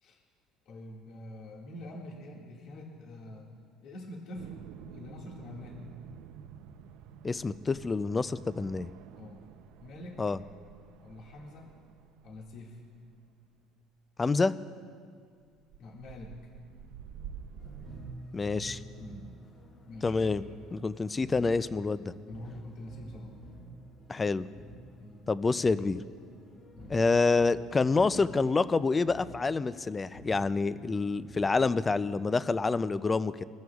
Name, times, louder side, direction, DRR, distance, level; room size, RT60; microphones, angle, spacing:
voice 1, 0.7-3.5 3.8-5.8 9.2-9.4 9.8-10.3 11.0-11.7 12.2-12.8 15.8-16.4 19.0-19.3 19.8-20.2 21.1-21.2 22.2-23.4 25.0-25.3 26.7-27.0, left 1 dB, 55° left, -2 dB, 1.9 m, -45 dB
sound 1, 4.3-13.2 15.4-18.1, right 8 dB, 80° right, 0.6 m, -49 dB
voice 2, 7.2-8.9 10.2-10.4 14.2-14.6 18.3-18.8 20.0-22.1 24.1-24.5 25.3-26.0 26.9-33.4, left 4 dB, 15° left, 15 dB, 0.3 m, -27 dB
sound 2, 17.6-31.6, equal, 35° left, 2.3 m, -49 dB
22.0 x 14.0 x 2.4 m, 2.2 s
cardioid pair, 150°, 0 cm